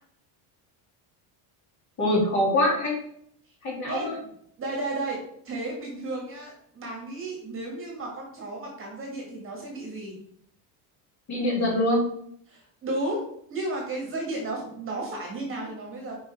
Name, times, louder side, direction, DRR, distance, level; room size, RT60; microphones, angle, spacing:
voice 1, 2.0-2.9 3.6-4.1 11.3-12.0, left 1 dB, 35° left, -3 dB, 2.2 m, -24 dB
voice 2, 4.6-5.2 5.4-10.1 12.5-13.2 13.5-16.2, right 2 dB, 25° right, -1 dB, 1.4 m, -33 dB
5.6 x 5.1 x 3.3 m, 0.67 s
cardioid pair, 170°, 49 cm